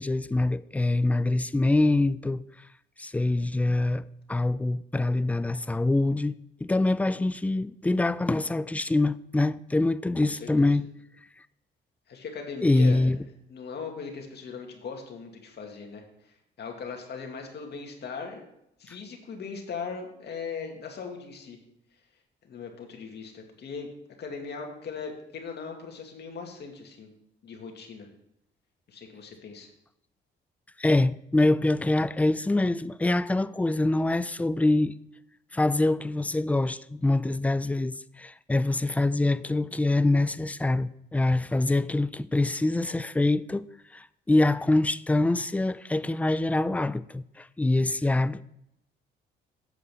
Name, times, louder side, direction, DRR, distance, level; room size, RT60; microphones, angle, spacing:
voice 1, 0.0-2.4 3.0-4.0 4.3-10.9 12.6-13.2 18.9-19.0 30.8-34.9 35.5-43.7 43.9-48.4, left 2 dB, 5° left, 0.3 m, -25 dB
voice 2, 10.2-10.7 12.1-13.1 13.5-18.4 18.8-21.6 22.4-23.9 24.2-27.1 27.4-28.1 28.9-29.7, left 5 dB, 55° left, 2.2 m, -39 dB
8.4 x 5.1 x 6.9 m
cardioid pair, 90°, 20 cm